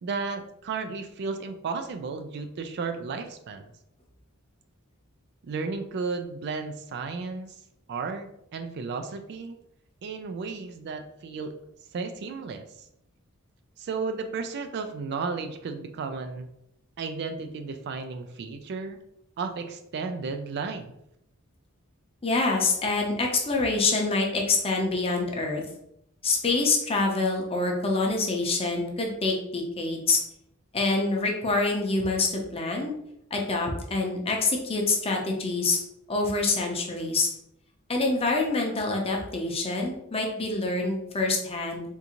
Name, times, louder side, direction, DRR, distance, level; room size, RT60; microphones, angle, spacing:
voice 1, 0.0-3.7 5.4-7.6 7.9-9.6 10.0-11.5 11.9-12.6 13.8-16.5 17.0-19.0 19.4-20.9, right 4 dB, 50° right, 7 dB, 0.3 m, -33 dB
voice 2, 22.2-25.6 26.2-30.2 30.7-32.9 33.3-35.8 36.1-37.3 37.9-41.8, left 3 dB, 25° left, 1 dB, 0.6 m, -26 dB
3.6 x 2.6 x 2.9 m, 0.76 s
head